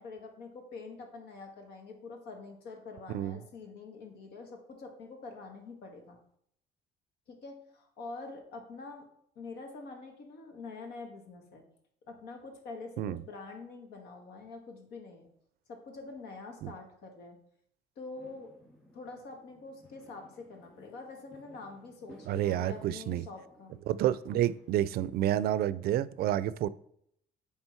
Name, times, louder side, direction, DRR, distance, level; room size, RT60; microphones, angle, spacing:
voice 1, 0.0-6.2 7.3-9.1 9.3-11.6 12.1-15.3 15.7-17.4 17.9-18.5 18.9-23.7, left 3 dB, 75° left, 3 dB, 1.7 m, -46 dB
Fireworks, 18.1-25.2, left 1 dB, 5° left, 2.4 m, -58 dB
voice 2, 22.3-23.3 23.9-26.7, right 12 dB, 65° right, 18 dB, 0.4 m, -29 dB
8.9 x 3.4 x 4.5 m, 0.70 s
cardioid pair, 110°, 17 cm